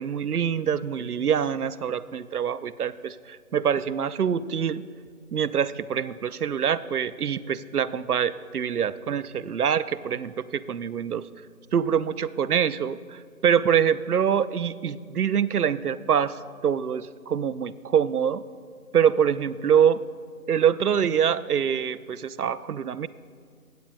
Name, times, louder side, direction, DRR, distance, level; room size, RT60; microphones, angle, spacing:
voice 1, 0.0-4.8 5.3-11.2 11.7-16.3 16.6-18.4 18.9-20.0 20.5-23.1, right 8 dB, 85° right, 15 dB, 0.5 m, -25 dB
17.0 x 8.5 x 2.4 m, 2.1 s
figure-of-eight pair, 160°, 44 cm